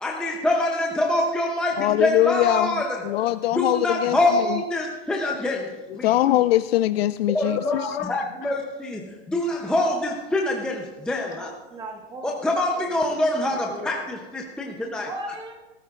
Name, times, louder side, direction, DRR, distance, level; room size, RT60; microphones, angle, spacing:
voice 1, 0.0-3.1 3.5-5.7 5.9-6.2 7.3-11.5 12.2-15.1, left 1 dB, 5° left, 0 dB, 0.6 m, -25 dB
voice 2, 1.8-2.7 3.0-4.2 6.0-8.3, left 14 dB, 70° left, 13 dB, 0.5 m, -22 dB
voice 3, 11.3-12.4 13.1-13.2 13.5-14.0 15.0-15.5, right 1 dB, 15° right, 1 dB, 1.5 m, -37 dB
20.0 x 13.5 x 2.5 m, 1.2 s
supercardioid pair, 150°, 31 cm